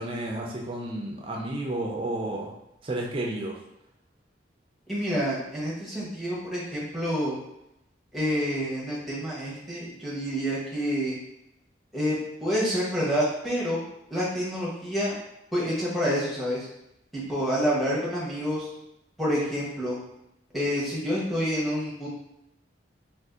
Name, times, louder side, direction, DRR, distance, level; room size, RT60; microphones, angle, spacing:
voice 1, 0.0-2.5 2.8-3.6, right 1 dB, 30° right, 0 dB, 0.4 m, -31 dB
voice 2, 4.9-7.4 8.1-11.2 11.9-13.8 14.1-15.2 15.5-16.7 17.1-18.7 19.2-20.0 20.5-22.1, equal, ahead, -7 dB, 0.9 m, -28 dB
2.6 x 2.4 x 3.5 m, 0.84 s
head